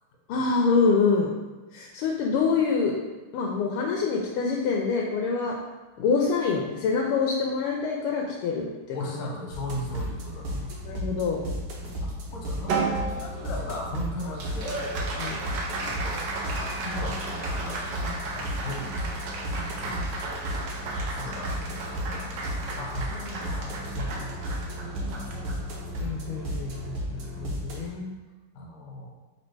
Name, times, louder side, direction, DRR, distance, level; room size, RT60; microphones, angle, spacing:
voice 1, 0.3-1.3 1.7-3.0 3.3-5.6 6.0-9.2 10.8-11.4 15.2-15.6 26.0-28.1, left 4 dB, 80° left, -1 dB, 1.5 m, -26 dB
voice 2, 8.9-10.8 12.0-14.8 15.6-20.4 20.8-25.4 28.5-29.1, left 1 dB, 60° left, -1 dB, 1.1 m, -38 dB
sound 1, 9.5-27.9, equal, 85° right, 1.9 m, -34 dB
Applause, 12.7-27.3, right 3 dB, 70° right, 1.2 m, -35 dB
4.3 x 2.8 x 4.5 m, 1.2 s
omnidirectional pair, 2.4 m